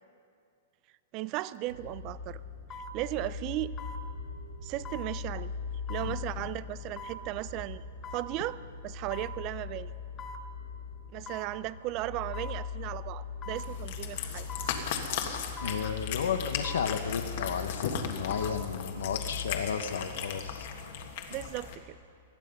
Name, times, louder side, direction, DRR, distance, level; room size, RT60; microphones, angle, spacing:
voice 1, 1.1-2.4 2.9-3.7 4.6-5.5 5.9-7.8 8.1-9.9 11.1-14.5 21.3-22.0, right 15 dB, 30° right, 18 dB, 0.4 m, -36 dB
sound 1, 1.6-1.7 2.7-3.0 3.8-4.0 4.9-5.1 5.9-6.1 7.0-7.2 8.0-8.3 9.1-9.4 10.2-10.4 11.3-11.5 12.3-12.6 13.4-13.7 14.5-14.8 15.6-15.8 16.6-16.9 18.1-18.6 19.0-19.1, left 2 dB, 20° left, 1.0 m, -42 dB
sound 2, 1.7-20.6, left 5 dB, 90° right, 3.0 m, -41 dB
voice 2, 6.0-6.4 15.6-20.7, left 7 dB, 85° left, 7 dB, 1.1 m, -33 dB
Cat, 13.6-21.7, left 7 dB, 50° left, 1.6 m, -37 dB
19.5 x 13.0 x 5.5 m, 2.4 s
hypercardioid pair, 165°, 0 cm